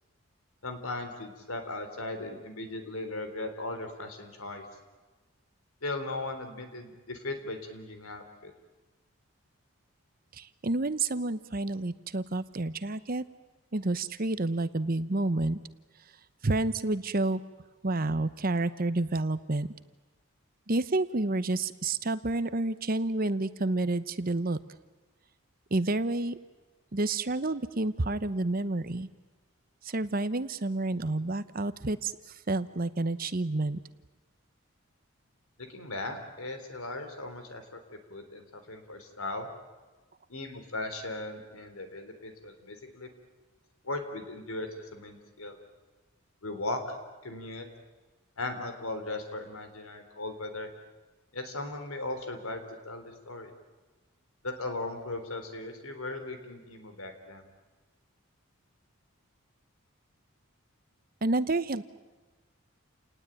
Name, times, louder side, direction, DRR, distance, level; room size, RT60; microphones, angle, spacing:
voice 1, 0.6-4.6 5.8-8.5 35.6-37.8 38.1-39.5 40.3-43.1 43.8-45.6 46.4-47.0 47.2-47.6 48.4-50.7 51.3-53.5 54.4-57.4, left 2 dB, 80° left, 7 dB, 3.7 m, -38 dB
voice 2, 10.3-13.2 13.7-15.6 16.4-17.4 17.8-19.7 20.7-24.6 25.7-26.4 26.9-29.1 29.8-33.8 61.2-61.8, right 2 dB, 40° right, 14 dB, 0.9 m, -29 dB
29.5 x 19.0 x 9.1 m, 1.3 s
head